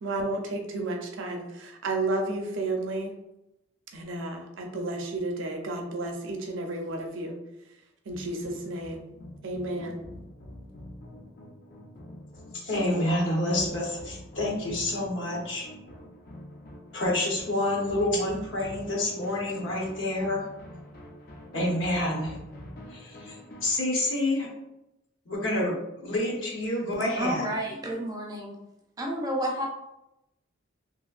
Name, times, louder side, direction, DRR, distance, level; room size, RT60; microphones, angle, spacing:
voice 1, 0.0-3.2 3.9-7.4 8.1-9.1 9.4-10.1, right 2 dB, 75° right, 3 dB, 0.5 m, -32 dB
sound 1, 8.1-23.8, left 1 dB, 50° left, 0.4 m, -46 dB
voice 2, 12.5-15.7 16.9-20.5 21.5-22.3 22.9-24.5 25.3-27.5, left 1 dB, 70° left, -2 dB, 0.9 m, -28 dB
voice 3, 27.2-28.5 29.0-29.7, right 1 dB, 20° right, 0 dB, 0.4 m, -30 dB
2.8 x 2.6 x 2.3 m, 0.88 s
head